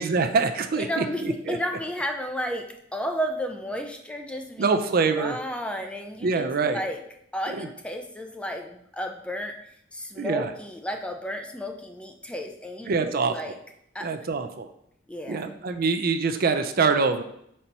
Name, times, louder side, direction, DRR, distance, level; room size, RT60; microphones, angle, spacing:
voice 1, 0.0-1.0 1.5-1.6 4.6-5.4 6.2-6.8 7.5-7.7 10.2-10.5 12.9-13.5 14.0-14.7 15.3-17.2, right 4 dB, 50° right, 8 dB, 0.4 m, -24 dB
voice 2, 0.7-4.7 5.2-7.0 7.3-9.6 9.9-13.5 13.9-14.1 15.1-15.5, equal, 5° left, 3 dB, 0.5 m, -32 dB
4.4 x 4.3 x 5.3 m, 0.73 s
head